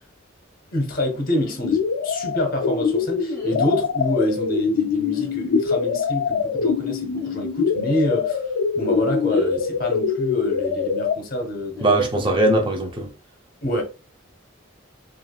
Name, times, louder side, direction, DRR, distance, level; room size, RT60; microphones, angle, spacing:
voice 1, 0.7-8.4 8.7-12.0 13.6-13.8, left 1 dB, 45° left, 0.8 m, -26 dB
sound 1, 1.3-1.6 3.3-3.6 5.1-5.4 7.1-7.4 9.3-9.6 11.7-11.9, left 5 dB, 15° left, 1.2 m, -37 dB
sound 2, 1.6-11.2, left 5 dB, 75° left, 0.3 m, -24 dB
voice 2, 11.8-13.1, right 2 dB, 25° right, 0.6 m, -20 dB
3.2 x 2.4 x 2.3 m
head